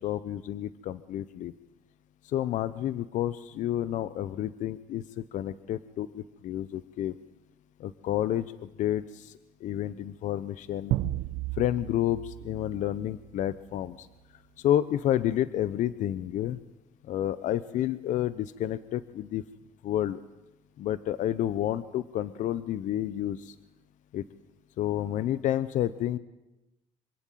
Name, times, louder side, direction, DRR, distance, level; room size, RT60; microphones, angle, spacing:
voice 1, 0.0-1.5 2.2-7.1 7.8-11.0 11.6-14.1 14.6-16.6 17.1-19.4 19.8-20.2 20.8-23.5 24.1-24.2 24.8-26.2, left 12 dB, 60° left, 16 dB, 0.9 m, -30 dB
sound 1, 10.9-13.7, right 15 dB, 85° right, 0.9 m, -34 dB
26.0 x 24.0 x 9.3 m, 0.98 s
cardioid pair, 135°, 14 cm